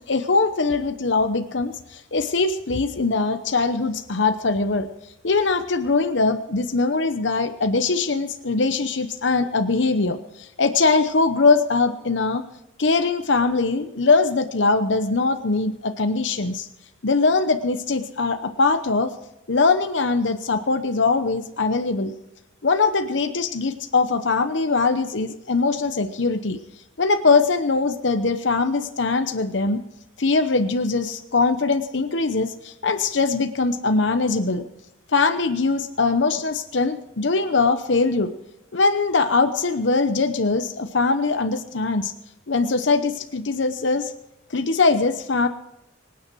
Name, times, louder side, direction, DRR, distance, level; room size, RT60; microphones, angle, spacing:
voice 1, 0.0-4.9 5.2-12.4 12.8-16.7 17.0-19.1 19.5-22.1 22.6-26.6 27.0-29.8 30.2-34.6 35.1-38.3 38.7-42.1 42.5-44.1 44.5-45.5, left 3 dB, 65° left, 8 dB, 0.9 m, -21 dB
25.0 x 9.5 x 4.6 m, 0.89 s
head